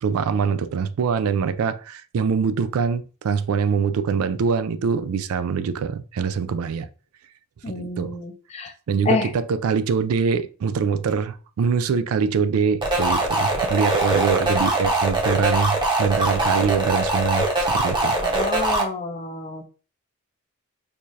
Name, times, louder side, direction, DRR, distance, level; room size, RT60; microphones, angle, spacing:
voice 1, 0.0-6.9 7.8-8.2 8.9-18.2, right 6 dB, 85° right, 0.4 m, -24 dB
voice 2, 7.6-8.7 9.1-9.3 18.3-19.7, left 3 dB, 30° left, 0.5 m, -28 dB
sound 1, 12.8-18.8, right 2 dB, 20° right, 0.7 m, -22 dB
4.7 x 2.4 x 2.7 m
head